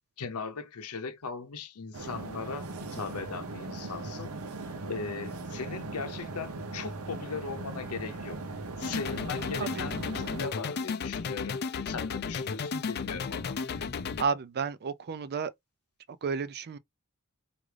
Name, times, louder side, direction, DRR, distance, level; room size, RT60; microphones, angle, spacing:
voice 1, 0.2-4.3 4.6-8.4 8.8-13.9, left 5 dB, 90° left, 0.7 m, -39 dB
sound 1, 1.9-10.5, right 3 dB, 70° right, 0.8 m, -39 dB
sound 2, 8.8-14.2, left 5 dB, 45° left, 0.4 m, -34 dB
voice 2, 14.2-15.5 16.2-16.8, right 5 dB, 45° right, 0.4 m, -31 dB
4.8 x 2.5 x 3.2 m
head